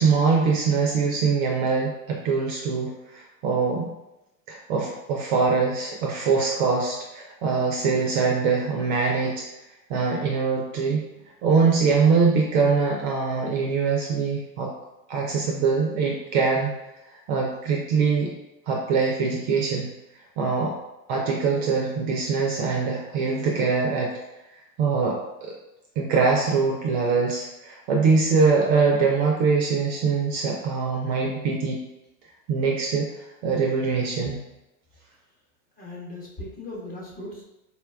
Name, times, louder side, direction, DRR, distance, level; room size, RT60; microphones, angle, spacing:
voice 1, 0.0-3.9 4.5-9.5 9.9-11.1 11.4-14.7 15.1-16.7 17.3-18.3 18.7-19.9 20.4-20.7 21.1-24.2 24.5-25.5 26.0-31.8 32.5-34.4, right 5 dB, 35° right, -1 dB, 0.4 m, -23 dB
voice 2, 35.8-37.5, left 1 dB, 20° left, -4 dB, 0.7 m, -38 dB
4.0 x 2.2 x 2.2 m, 0.93 s
hypercardioid pair, 100°, 45 cm